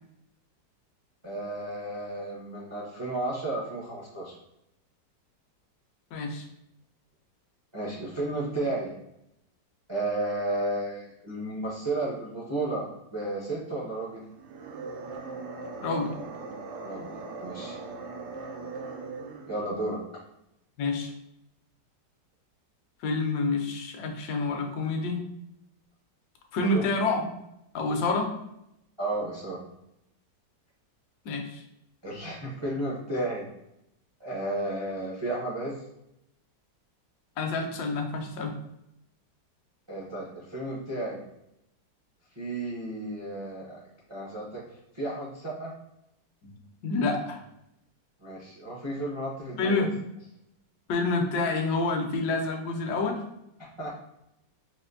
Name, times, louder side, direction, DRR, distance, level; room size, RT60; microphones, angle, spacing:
voice 1, 1.2-4.3 7.7-8.9 9.9-14.2 16.8-17.8 19.5-20.0 26.6-26.8 29.0-29.6 32.0-33.5 34.2-35.8 39.9-41.2 42.3-43.8 44.1-44.6 44.9-45.7 48.2-49.9 53.6-53.9, right 2 dB, 40° right, -6 dB, 0.4 m, -33 dB
voice 2, 6.1-6.5 15.8-16.2 20.8-21.1 23.0-25.2 26.5-27.3 27.7-28.3 31.2-31.6 37.4-38.5 46.4-46.6 46.8-47.4 49.6-49.9 50.9-53.2, left 3 dB, 70° left, 2 dB, 1.0 m, -28 dB
sound 1, 14.3-19.7, right 3 dB, 90° right, 1.3 m, -39 dB
4.2 x 2.5 x 2.5 m, 0.83 s
omnidirectional pair, 2.0 m